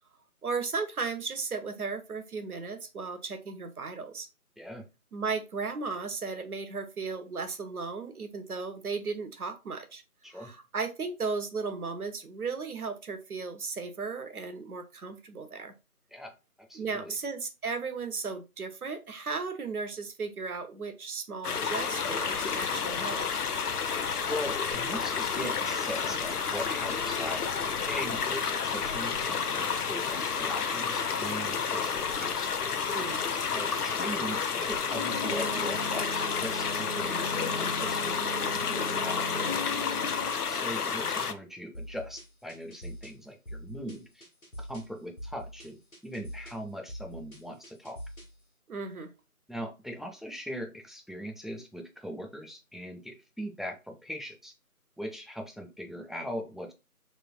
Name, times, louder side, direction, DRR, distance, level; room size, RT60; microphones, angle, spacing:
voice 1, 0.4-4.3 5.1-10.0 10.3-15.7 16.7-23.3 32.9-33.2 48.7-49.1, right 4 dB, 75° right, 9 dB, 0.7 m, -35 dB
voice 2, 4.6-4.9 10.2-10.5 16.1-17.1 24.3-32.5 33.4-38.2 38.5-40.0 40.5-44.3 44.6-48.0 49.5-54.5 55.0-56.7, equal, ahead, 3 dB, 0.3 m, -40 dB
sound 1, 21.4-41.3, left 6 dB, 90° left, 0.5 m, -30 dB
sound 2, 34.9-40.3, left 1 dB, 50° left, 0.7 m, -38 dB
sound 3, 41.7-48.4, equal, 70° left, 1.2 m, -45 dB
3.1 x 2.5 x 2.3 m, 0.28 s
figure-of-eight pair, 170°, 44 cm